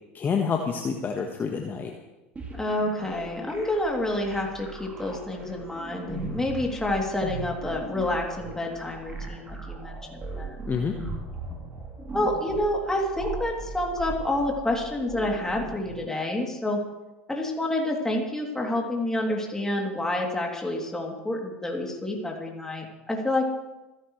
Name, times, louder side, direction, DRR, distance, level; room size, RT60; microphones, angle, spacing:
voice 1, 0.1-1.9 10.7-10.9, left 6 dB, 30° left, 3 dB, 1.4 m, -28 dB
sound 1, 2.4-16.0, right 3 dB, 20° right, 3.5 m, -38 dB
voice 2, 2.5-10.6 12.1-16.8 17.3-23.5, left 1 dB, 10° left, 0 dB, 3.0 m, -28 dB
27.0 x 11.5 x 3.3 m, 1.1 s
hypercardioid pair, 80°, 7 cm